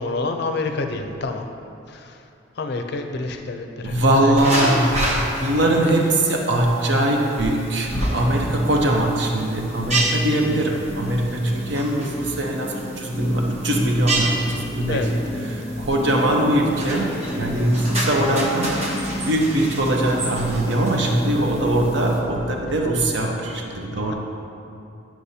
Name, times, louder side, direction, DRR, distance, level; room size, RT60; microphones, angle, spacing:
voice 1, 0.0-1.5 1.9-2.2 2.6-4.8 14.9-15.5, left 3 dB, 55° left, 5 dB, 0.5 m, -28 dB
voice 2, 3.8-5.0 5.3-15.0 15.4-18.7 19.3-24.1, right 1 dB, 60° right, 0 dB, 0.8 m, -21 dB
sound 1, 4.4-22.2, right 1 dB, 35° right, 0.9 m, -31 dB
sound 2, 7.9-23.0, equal, 5° left, 0.6 m, -33 dB
9.6 x 6.1 x 2.7 m, 2.6 s
head